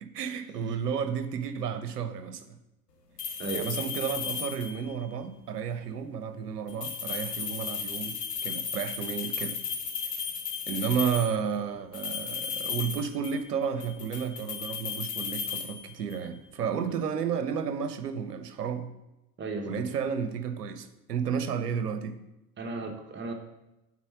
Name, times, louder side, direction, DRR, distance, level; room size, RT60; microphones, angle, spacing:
voice 1, 0.0-2.6 3.5-9.6 10.7-18.9 19.6-22.2, right 7 dB, 75° right, 10 dB, 0.8 m, -32 dB
sound 1, 3.2-4.9 6.7-11.4 11.9-13.5 13.8-16.3, left 6 dB, 75° left, 1.2 m, -35 dB
voice 2, 3.4-3.7 19.4-19.8 22.6-23.3, right 3 dB, 25° right, 4 dB, 1.2 m, -35 dB
8.3 x 4.3 x 6.0 m, 0.94 s
figure-of-eight pair, 75°, 48 cm